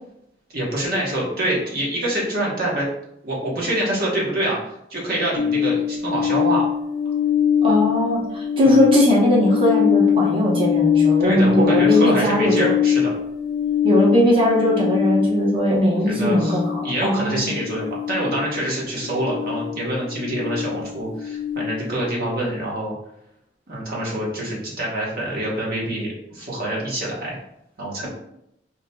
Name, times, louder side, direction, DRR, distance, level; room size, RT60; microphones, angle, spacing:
voice 1, 0.5-2.9 3.2-4.6 4.9-6.6 8.6-8.8 11.2-13.1 16.0-22.9 23.7-27.4 27.8-28.1, right 1 dB, 55° right, -4 dB, 1.1 m, -25 dB
sound 1, 5.4-22.1, left 8 dB, 85° left, 0.3 m, -23 dB
voice 2, 7.6-12.7 13.8-17.5, equal, 30° right, -5 dB, 0.9 m, -19 dB
4.8 x 2.9 x 2.2 m, 0.80 s
head